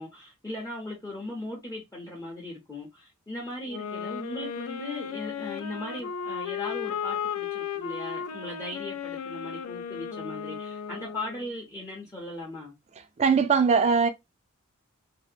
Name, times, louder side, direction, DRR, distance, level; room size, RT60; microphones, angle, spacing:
voice 1, 0.0-12.7, left 1 dB, 15° left, 0.6 m, -38 dB
sound 1, 3.7-11.5, left 7 dB, 80° left, 0.3 m, -35 dB
voice 2, 13.2-14.1, right 5 dB, 30° right, 0.3 m, -20 dB
2.6 x 2.0 x 2.4 m
head